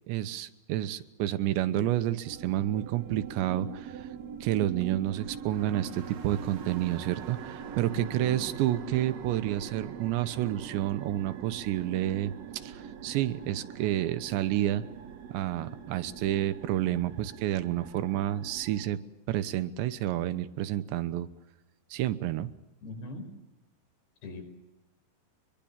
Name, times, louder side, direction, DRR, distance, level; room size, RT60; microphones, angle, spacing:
voice 1, 0.1-4.1 4.4-12.3 12.6-14.9 15.3-21.3 21.9-22.5, right 13 dB, 85° right, 12 dB, 3.3 m, -30 dB
sound 1, 2.2-18.9, right 7 dB, 55° right, 2.0 m, -43 dB
voice 2, 7.9-8.4 22.8-23.3 24.2-24.4, left 3 dB, 70° left, 6 dB, 7.2 m, -40 dB
24.5 x 22.5 x 7.3 m, 1.0 s
omnidirectional pair, 5.0 m